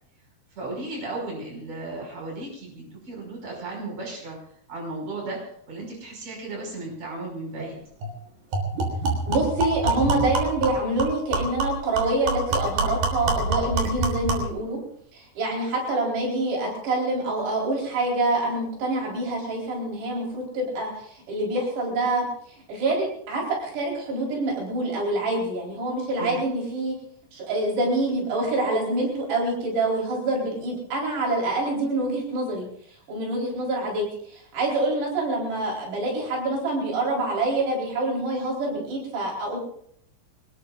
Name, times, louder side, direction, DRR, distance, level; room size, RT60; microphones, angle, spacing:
voice 1, 0.6-4.4 4.7-7.8 26.2-26.4, right 2 dB, 40° right, -1 dB, 6.9 m, -35 dB
sound 1, 7.6-7.7 8.0-8.1 8.5-14.5, right 3 dB, 65° right, 5.2 m, -26 dB
voice 2, 9.3-14.8 15.1-26.9 27.3-39.6, right 2 dB, 85° right, -2 dB, 6.3 m, -26 dB
24.5 x 20.5 x 2.5 m, 0.67 s
omnidirectional pair, 4.7 m